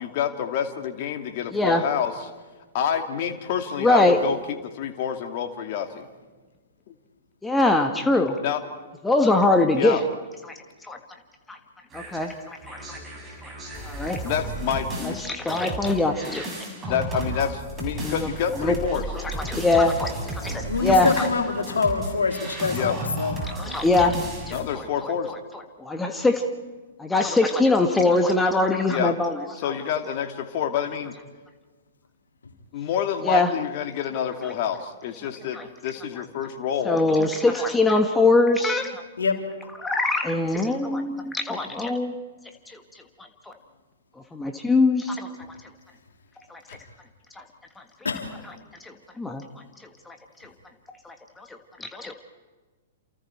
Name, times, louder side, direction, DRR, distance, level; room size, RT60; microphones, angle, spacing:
voice 1, 0.0-2.1 2.7-4.4 4.6-6.1 8.4-8.6 9.7-10.0 14.2-15.2 16.9-19.1 22.7-23.0 24.5-25.3 28.9-29.2 29.6-31.2 32.7-37.1 37.5-37.6, left 8 dB, 40° left, 6 dB, 2.4 m, -28 dB
voice 2, 1.5-1.8 3.8-4.2 7.4-8.4 9.0-10.0 10.5-10.6 10.9-11.0 11.5-11.6 11.9-13.0 13.4-13.5 13.8-14.3 15.0-16.4 18.0-18.3 18.6-18.7 19.2-21.3 23.6-24.2 24.5-24.8 25.8-26.5 27.0-29.7 33.2-33.5 35.5-35.7 36.8-39.0 39.8-42.1 42.7-42.8 44.3-45.3 46.5-46.6 48.8-49.4 50.1-50.2 51.0-51.4 51.8-52.1, left 2 dB, 5° left, 5 dB, 1.6 m, -22 dB
sound 1, 11.9-24.6, right 2 dB, 20° right, 7.1 m, -34 dB
voice 3, 20.7-23.4 39.2-39.5 48.0-48.3, left 4 dB, 70° left, 4 dB, 3.4 m, -25 dB
29.0 x 28.5 x 4.6 m, 1.3 s
figure-of-eight pair, 110°, 0 cm